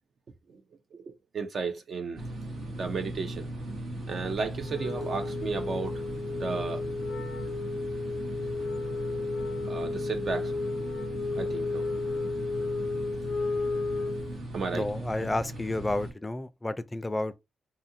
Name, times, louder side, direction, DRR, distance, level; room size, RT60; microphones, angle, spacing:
voice 1, 1.3-2.2 2.7-3.5 4.1-6.0 6.3-6.8 9.6-10.6 11.3-11.9 14.5-14.9, right 5 dB, 60° right, 0.4 m, -34 dB
sound 1, 2.2-16.1, right 1 dB, 80° right, 0.9 m, -38 dB
Wind instrument woodwind instrument, 4.6-14.4, left 3 dB, 75° left, 0.5 m, -33 dB
voice 2, 14.7-17.3, left 2 dB, 20° left, 0.4 m, -31 dB
2.7 x 2.5 x 2.6 m
cardioid pair, 65°, 0 cm